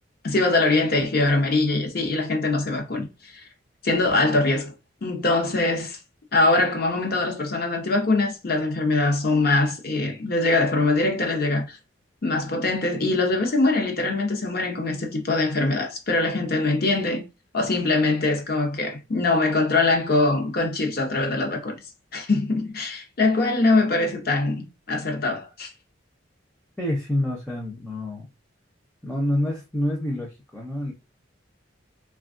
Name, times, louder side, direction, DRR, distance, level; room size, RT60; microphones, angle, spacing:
voice 1, 0.2-3.4 3.8-4.7 5.0-6.0 6.3-11.8 12.2-17.2 17.5-21.8 22.1-25.7, left 2 dB, 50° left, 0.8 m, -23 dB
voice 2, 26.8-28.3 29.0-30.9, left 1 dB, 5° left, 0.6 m, -27 dB
3.2 x 2.3 x 2.5 m
head